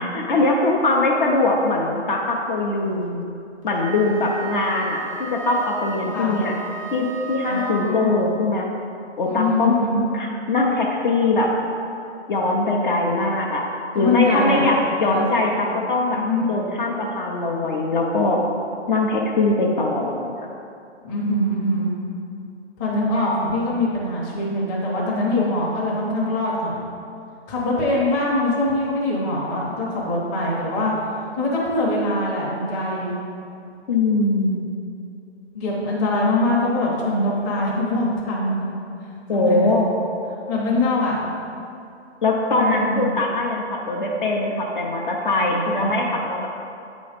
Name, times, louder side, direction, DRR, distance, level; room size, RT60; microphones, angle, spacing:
voice 1, 0.0-3.2 3.6-6.5 6.9-8.7 9.2-9.9 10.1-11.5 12.3-13.6 13.9-18.4 18.9-20.5 33.9-34.7 39.3-39.9 42.2-46.5, left 2 dB, 45° left, -1 dB, 0.7 m, -22 dB
Wind instrument woodwind instrument, 3.7-8.3, right 4 dB, 30° right, 0.4 m, -35 dB
voice 2, 7.4-8.2 9.2-10.0 14.0-14.6 15.0-15.3 16.1-16.5 21.0-21.9 22.8-26.8 27.5-33.2 35.5-38.7 39.3-39.7 40.5-41.3 42.5-43.1 45.3-45.9, left 1 dB, 15° left, -5 dB, 0.8 m, -23 dB
8.6 x 3.1 x 5.0 m, 2.6 s
hypercardioid pair, 160°, 35 cm